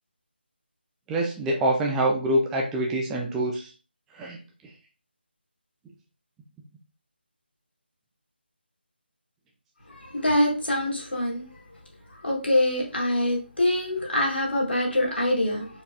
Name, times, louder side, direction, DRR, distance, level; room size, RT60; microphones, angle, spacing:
voice 1, 1.1-3.7 4.2-4.4, right 1 dB, 5° right, 0.4 m, -25 dB
voice 2, 9.9-11.4 12.2-15.7, left 1 dB, 70° left, 2.1 m, -24 dB
4.5 x 3.9 x 2.2 m
figure-of-eight pair, 155°, 6 cm